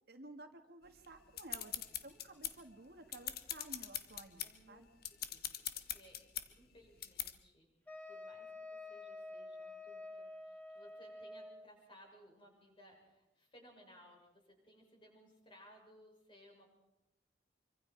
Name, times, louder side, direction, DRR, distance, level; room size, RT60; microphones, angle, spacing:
voice 1, 0.1-4.9, right 2 dB, 55° right, 6 dB, 1.9 m, -54 dB
sound 1, 1.0-2.7 3.1-4.5 5.0-6.5 7.0-7.3, left 12 dB, 55° left, 1.3 m, -42 dB
voice 2, 4.4-6.2 6.5-7.7 8.1-16.6, equal, 25° left, 0 dB, 7.0 m, -62 dB
Wind instrument woodwind instrument, 7.9-11.7, left 2 dB, 10° left, 3.5 m, -49 dB
26.0 x 24.5 x 4.7 m, 0.95 s
head